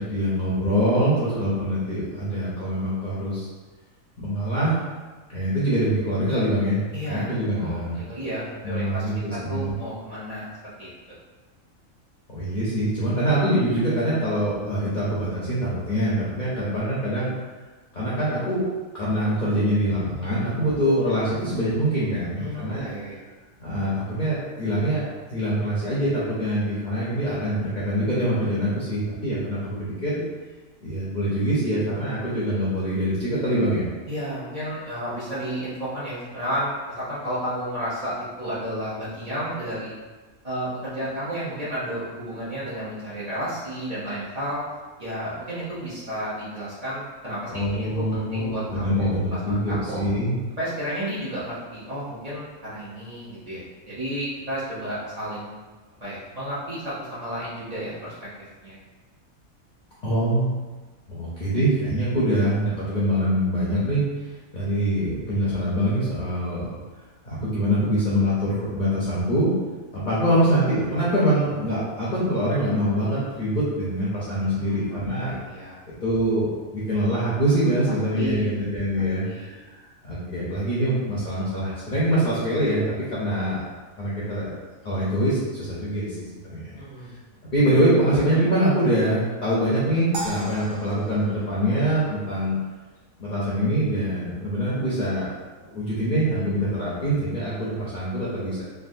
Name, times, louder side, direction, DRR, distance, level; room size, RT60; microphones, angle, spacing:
voice 1, 0.0-3.5 4.2-4.8 5.3-8.0 8.6-9.7 12.3-17.3 17.9-18.6 18.9-22.9 23.6-25.0 25.3-30.2 30.8-33.8 47.5-50.4 60.0-60.5 61.1-64.0 64.5-66.7 67.2-69.5 69.9-75.4 76.0-83.6 84.0-84.5 84.8-86.8 87.5-92.6 93.2-95.3 95.7-98.6, right 1 dB, 45° left, -8 dB, 0.6 m, -24 dB
voice 2, 6.9-10.5 10.8-10.9 22.4-23.2 34.1-40.0 40.4-44.6 45.0-50.0 50.6-55.5 56.0-58.1 58.6-58.8 74.5-75.8 78.1-78.5 79.2-79.5 86.8-87.1, equal, 35° right, -10 dB, 0.7 m, -32 dB
sound 1, 90.1-92.5, right 1 dB, 75° right, 1.0 m, -37 dB
3.4 x 2.4 x 2.6 m, 1.3 s
omnidirectional pair, 1.5 m